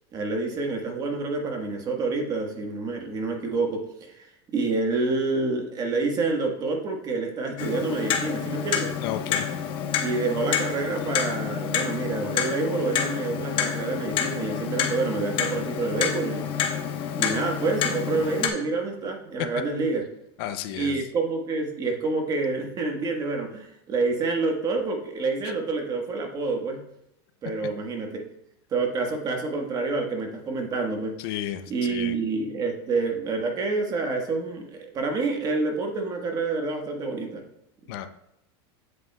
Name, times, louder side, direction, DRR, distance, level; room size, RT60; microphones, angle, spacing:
voice 1, 0.1-4.3 4.5-8.9 10.0-16.4 17.2-20.0 20.7-26.8 27.4-28.2 28.7-31.1 31.7-37.4, right 3 dB, 25° right, 3 dB, 1.4 m, -28 dB
Clock, 7.6-18.5, left 8 dB, 35° left, 1.0 m, -28 dB
voice 2, 9.0-9.5 20.4-21.0 31.2-32.2 37.9-38.1, left 11 dB, 60° left, 10 dB, 0.6 m, -33 dB
7.9 x 7.6 x 2.3 m, 0.84 s
supercardioid pair, 145°, 14 cm